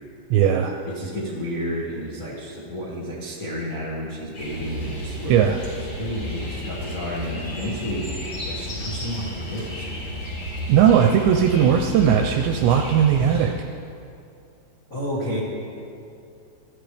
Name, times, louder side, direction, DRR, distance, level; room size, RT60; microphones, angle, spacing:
voice 1, 0.3-0.7 5.3-5.6 10.7-13.5, right 8 dB, 80° right, 4 dB, 2.6 m, -18 dB
voice 2, 0.8-5.3 5.6-8.1 8.5-10.0 10.9-11.0 14.9-15.4, equal, 70° left, -5 dB, 0.7 m, -31 dB
sound 1, 4.3-13.5, equal, 35° left, 4.2 m, -32 dB
22.0 x 13.5 x 3.4 m, 2.5 s
omnidirectional pair, 5.6 m